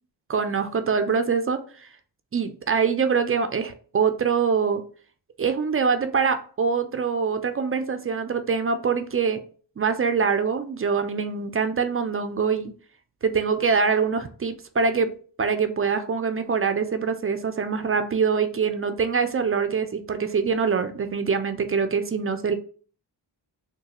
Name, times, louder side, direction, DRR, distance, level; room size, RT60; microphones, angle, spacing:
voice 1, 0.3-1.9 2.3-4.8 5.4-9.4 9.8-12.7 13.2-15.1 15.4-22.5, right 5 dB, 30° right, 9 dB, 0.4 m, -24 dB
3.9 x 2.2 x 2.9 m, 0.42 s
cardioid pair, 75°, 44 cm